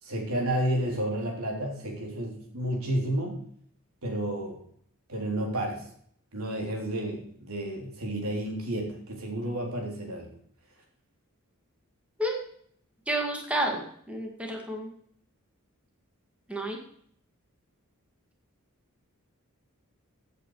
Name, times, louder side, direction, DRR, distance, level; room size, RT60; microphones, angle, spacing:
voice 1, 0.0-3.4 4.0-4.6 5.1-5.8 6.3-10.3, right 1 dB, 85° right, 1 dB, 3.6 m, -31 dB
voice 2, 13.1-13.8 14.1-14.9 16.5-16.8, right 1 dB, 5° right, 1 dB, 2.1 m, -30 dB
15.5 x 8.3 x 4.9 m, 0.64 s
head